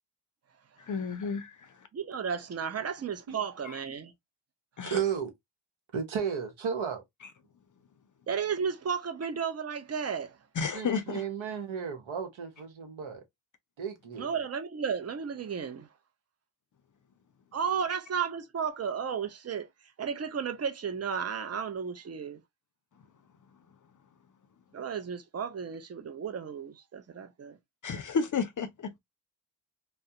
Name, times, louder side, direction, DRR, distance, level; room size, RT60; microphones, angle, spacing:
voice 1, 0.8-1.8 3.6-3.8 4.8-5.0 10.6-11.3 27.8-28.9, left 5 dB, 40° left, 0.5 m, -32 dB
voice 2, 1.9-4.1 8.3-10.4 14.2-15.9 17.5-19.7 20.0-22.4 24.7-27.6, right 6 dB, 30° right, 0.6 m, -33 dB
voice 3, 4.9-5.3 5.9-7.0 10.7-13.2 13.8-14.3, right 7 dB, 70° right, 1.0 m, -33 dB
2.2 x 2.1 x 2.7 m
cardioid pair, 50°, 50 cm